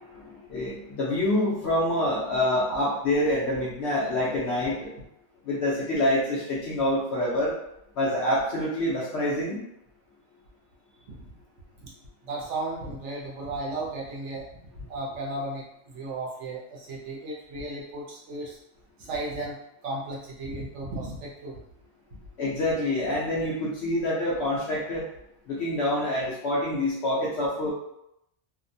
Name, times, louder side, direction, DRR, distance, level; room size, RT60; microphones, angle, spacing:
voice 1, 0.0-5.0 5.4-7.5 8.0-9.6 22.4-25.1 25.5-27.7, left 1 dB, 65° left, -6 dB, 0.8 m, -26 dB
voice 2, 12.2-14.4 14.9-15.6 15.9-18.6 19.0-19.6 19.8-21.6, right 2 dB, 65° right, -4 dB, 0.9 m, -34 dB
2.6 x 2.1 x 2.6 m, 0.81 s
omnidirectional pair, 1.3 m